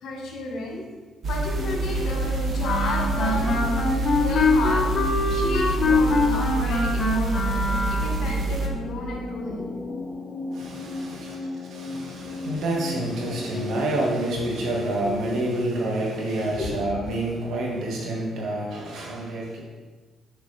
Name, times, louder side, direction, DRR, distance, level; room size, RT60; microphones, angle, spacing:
voice 1, 0.0-0.8 1.3-9.8 11.1-11.3 16.5-16.8, left 2 dB, 75° left, -1 dB, 1.6 m, -33 dB
sound 1, 1.2-8.7, right 2 dB, 55° right, 0.9 m, -27 dB
sound 2, 1.6-15.6, left 2 dB, 15° left, 1.7 m, -35 dB
Wind instrument woodwind instrument, 2.6-8.3, left 3 dB, 45° left, 1.1 m, -24 dB
voice 2, 10.5-11.4 11.7-19.6, right 1 dB, 75° right, -2 dB, 1.9 m, -28 dB
6.7 x 6.0 x 3.4 m, 1.3 s
cardioid pair, 90°, 0 cm